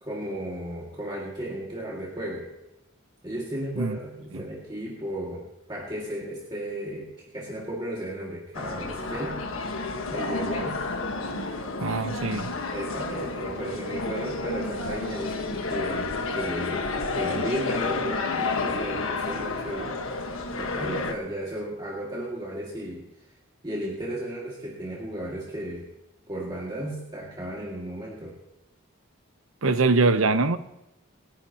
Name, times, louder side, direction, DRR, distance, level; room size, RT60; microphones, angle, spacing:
voice 1, 0.0-2.5 3.2-10.8 11.3-11.6 11.9-12.1 12.7-16.9 17.1-20.0 20.6-23.1 23.6-25.9 26.3-28.3, right 1 dB, 20° right, -4 dB, 2.1 m, -34 dB
sound 1, 8.5-21.1, left 3 dB, 75° left, 1.4 m, -30 dB
voice 2, 11.8-12.5 29.6-30.6, right 3 dB, 75° right, 10 dB, 0.9 m, -23 dB
29.0 x 10.0 x 2.9 m, 0.96 s
head